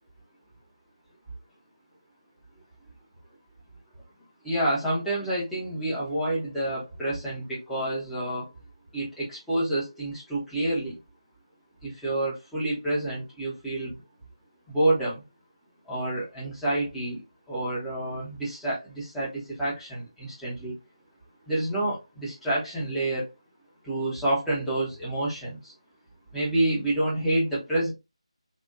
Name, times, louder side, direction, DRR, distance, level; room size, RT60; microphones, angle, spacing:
voice 1, 4.4-8.5 8.9-11.0 11.8-13.9 14.7-15.2 15.9-17.2 17.5-20.7 21.5-23.3 23.8-25.7 26.3-27.9, right 1 dB, ahead, -9 dB, 1.1 m, -28 dB
4.1 x 2.7 x 2.4 m, 0.23 s
figure-of-eight pair, 160°, 3 cm